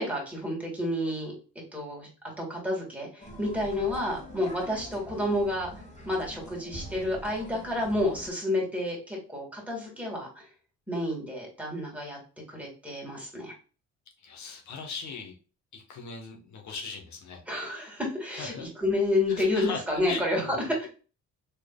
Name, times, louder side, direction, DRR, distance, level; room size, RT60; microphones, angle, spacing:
voice 1, 0.0-1.3 1.7-2.1 2.4-5.7 6.1-10.5 10.9-12.2 12.5-13.5 17.5-20.6, left 1 dB, 5° right, -2 dB, 2.0 m, -30 dB
sound 1, 3.2-8.3, equal, 25° left, 1.5 m, -45 dB
voice 2, 14.2-15.3 15.7-17.4 18.3-18.7 19.3-20.9, left 5 dB, 70° left, 2 dB, 1.1 m, -39 dB
4.5 x 3.2 x 2.2 m, 0.36 s
cardioid pair, 90°, 30 cm